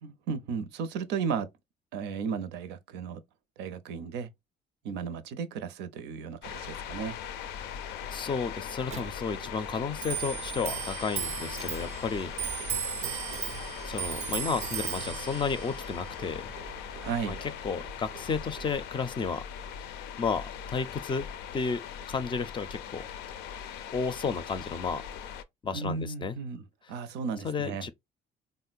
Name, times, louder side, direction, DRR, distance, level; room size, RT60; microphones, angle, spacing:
voice 1, 0.0-1.5 1.9-3.2 3.6-4.3 4.8-7.2 17.0-17.4 25.7-27.9, right 6 dB, 90° right, 0.6 m, -34 dB
sound 1, 6.4-25.4, left 8 dB, 85° left, 0.5 m, -40 dB
voice 2, 8.1-12.3 13.8-16.5 17.3-17.4 17.6-19.4 20.2-21.3 21.5-21.8 22.1-23.0 23.9-25.0 25.6-26.4 27.4-27.9, left 5 dB, 30° left, 0.4 m, -32 dB
Clock, 8.9-18.8, right 10 dB, 40° right, 0.4 m, -37 dB
3.7 x 2.1 x 2.3 m
cardioid pair, 110°, 17 cm